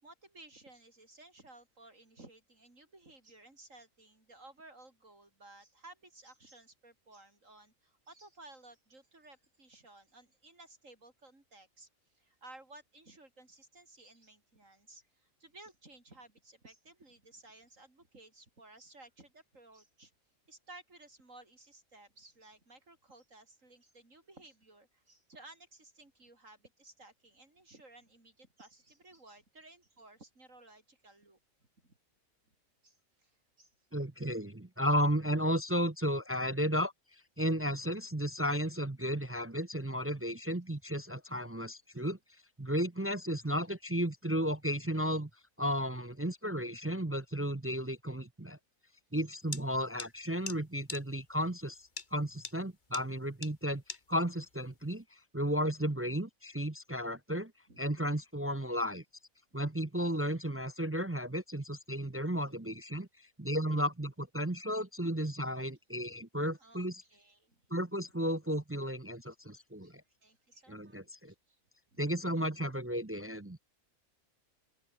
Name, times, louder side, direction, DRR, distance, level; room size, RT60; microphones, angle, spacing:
voice 1, 0.0-11.9 12.1-20.1 20.5-31.4 31.8-32.0 32.5-32.6 32.8-33.7 49.1-49.2 57.7-58.1 66.5-67.6 69.8-69.9 70.2-71.6 71.9-72.0, right 2 dB, 70° right, 5.9 m, -57 dB
voice 2, 33.9-36.9 37.4-42.2 42.6-45.3 45.6-48.6 49.1-51.8 52.1-53.8 54.1-55.0 55.3-57.5 57.8-59.0 59.5-63.1 63.4-67.0 67.7-69.9 70.7-71.3 72.0-73.6, equal, 15° right, 0.5 m, -33 dB
sound 1, 49.5-49.6 50.0-50.1 50.5-50.6 50.9-51.0 52.0-52.1 52.4-52.6 52.9-53.0 53.4-53.5 53.9-54.0, left 4 dB, 35° left, 1.7 m, -39 dB
open air
omnidirectional pair, 1.4 m